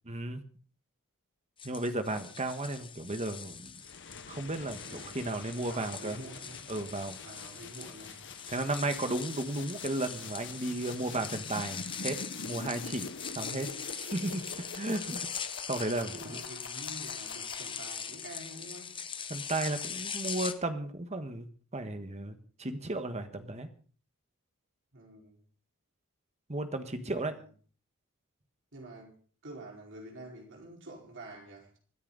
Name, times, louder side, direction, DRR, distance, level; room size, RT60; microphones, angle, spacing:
voice 1, 0.1-0.4 1.6-3.8 4.3-6.2 6.7-7.2 8.5-13.7 14.0-15.3 15.7-16.4 19.3-21.5 21.7-23.7 26.5-27.3, right 2 dB, 30° right, 1.5 m, -34 dB
sound 1, 1.6-20.5, left 7 dB, 25° left, 1.0 m, -42 dB
sound 2, 3.8-18.1, left 4 dB, 55° left, 1.2 m, -46 dB
voice 2, 4.9-5.2 5.7-6.6 7.1-8.3 16.0-19.0 24.9-25.4 27.0-27.5 28.7-29.1 29.4-31.8, right 1 dB, 55° right, 4.9 m, -47 dB
25.5 x 10.0 x 4.0 m
head